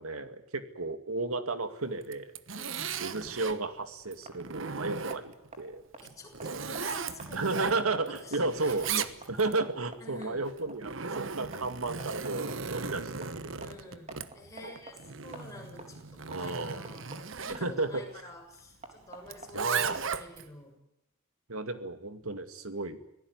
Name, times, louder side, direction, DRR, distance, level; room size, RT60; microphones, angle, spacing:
voice 1, 0.0-2.3 3.0-5.8 7.3-13.7 14.6-14.8 16.3-16.8 17.5-18.0 19.5-20.0 21.5-23.0, right 3 dB, 85° right, 9 dB, 2.3 m, -33 dB
Zipper (clothing), 2.0-3.6 4.1-5.5 6.0-8.2 8.5-9.6 10.5-17.6 19.3-20.5, right 6 dB, 60° right, 1.2 m, -37 dB
voice 2, 2.6-2.9 6.0-8.9 10.0-10.5 13.6-20.7, left 1 dB, 15° left, 0 dB, 7.0 m, -49 dB
sound 1, 3.7-20.4, right 2 dB, 30° right, 4.0 m, -51 dB
25.5 x 17.5 x 9.8 m, 0.86 s
head